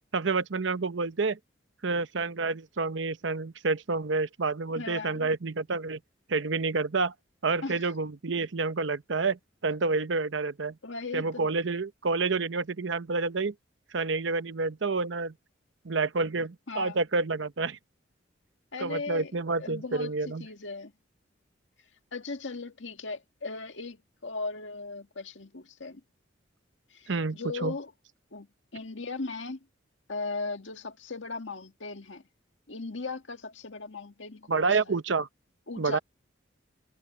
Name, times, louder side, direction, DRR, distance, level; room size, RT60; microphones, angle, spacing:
voice 1, 0.1-1.4 1.8-6.0 6.3-7.1 7.4-10.8 11.1-13.5 13.9-15.3 15.8-17.8 18.8-20.4 27.1-27.7 34.5-35.3 35.8-36.0, right 3 dB, 70° right, 0.8 m, -29 dB
voice 2, 4.8-5.3 7.6-7.9 10.8-11.5 16.7-17.0 18.7-19.3 19.6-20.9 22.1-26.0 26.9-27.9 28.3-28.5 28.7-29.6 30.1-32.2 32.7-35.0 35.7-36.0, left 3 dB, 75° left, 1.9 m, -38 dB
head